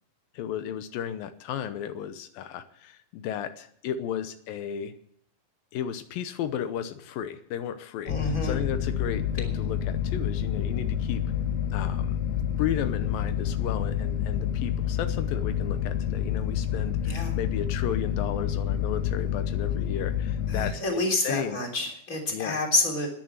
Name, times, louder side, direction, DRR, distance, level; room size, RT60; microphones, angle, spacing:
voice 1, 0.3-4.9 5.7-11.2 11.7-12.2 12.6-21.6 22.3-22.6, left 9 dB, 85° left, 10 dB, 2.6 m, -34 dB
sound 1, 8.1-20.7, left 9 dB, 70° left, 1.8 m, -28 dB
voice 2, 8.1-8.6 17.1-17.3 20.5-23.1, left 2 dB, 25° left, 1 dB, 3.6 m, -28 dB
13.0 x 10.5 x 8.1 m, 0.68 s
omnidirectional pair, 4.1 m